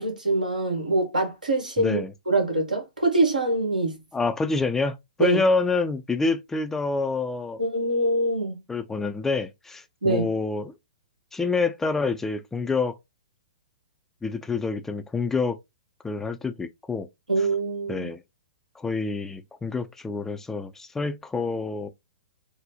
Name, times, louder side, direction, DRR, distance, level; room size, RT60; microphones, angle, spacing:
voice 1, 0.0-2.0 2.3-4.0 5.2-5.4 7.6-8.6 10.0-10.3 17.3-18.1, right 2 dB, 85° right, 1.5 m, -24 dB
voice 2, 1.8-2.1 4.1-7.6 8.7-10.7 11.3-13.0 14.2-15.6 16.0-17.1 17.9-18.2 18.8-21.9, left 4 dB, 10° left, 0.3 m, -27 dB
3.7 x 2.0 x 3.1 m
figure-of-eight pair, 115°, 4 cm